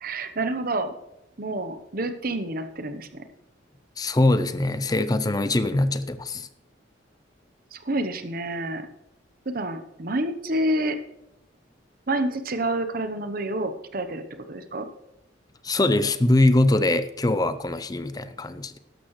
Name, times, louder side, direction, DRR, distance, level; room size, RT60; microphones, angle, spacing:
voice 1, 0.0-0.9 1.4-3.2 7.7-8.9 9.5-11.0 12.1-14.2 14.5-14.9, right 1 dB, 50° right, 10 dB, 0.9 m, -28 dB
voice 2, 4.0-6.5 15.6-18.8, left 2 dB, 20° left, 13 dB, 0.6 m, -22 dB
13.0 x 11.5 x 3.2 m, 0.90 s
head